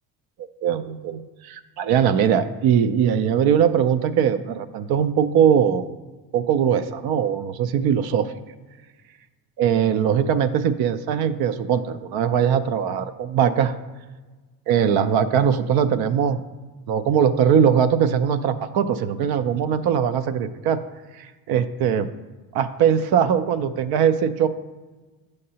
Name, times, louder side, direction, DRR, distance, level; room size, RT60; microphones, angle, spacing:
voice 1, 0.6-5.9 6.3-8.3 9.6-13.8 14.7-16.4 16.9-20.8 21.2-22.1 22.5-24.5, right 8 dB, 70° right, 11 dB, 0.5 m, -21 dB
8.5 x 6.5 x 2.8 m, 1.3 s
cardioid pair, 130°, 40 cm